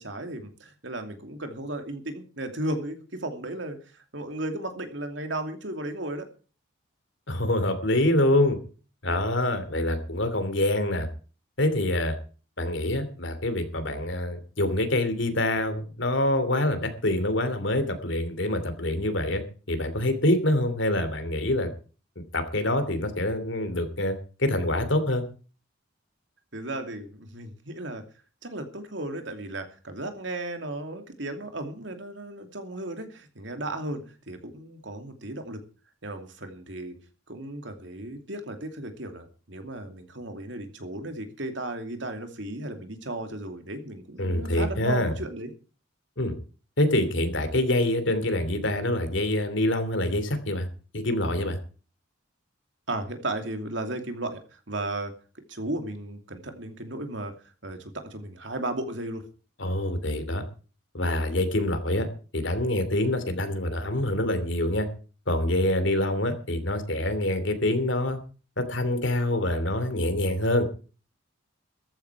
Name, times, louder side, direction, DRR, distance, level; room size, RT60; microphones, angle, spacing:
voice 1, 0.0-6.3 26.5-28.0 28.4-35.6 36.0-37.0 37.3-45.5 52.9-55.1 55.5-57.3 57.6-59.2, right 1 dB, 65° right, 6 dB, 2.7 m, -35 dB
voice 2, 7.3-8.6 9.0-11.1 11.6-12.2 12.6-21.7 22.3-25.3 44.2-45.1 46.2-46.3 46.8-50.7 50.9-51.6 59.6-60.4 60.9-62.1 62.3-64.9 65.3-68.2 68.6-70.7, left 1 dB, 70° left, 10 dB, 2.8 m, -25 dB
14.5 x 13.0 x 4.8 m, 0.38 s
head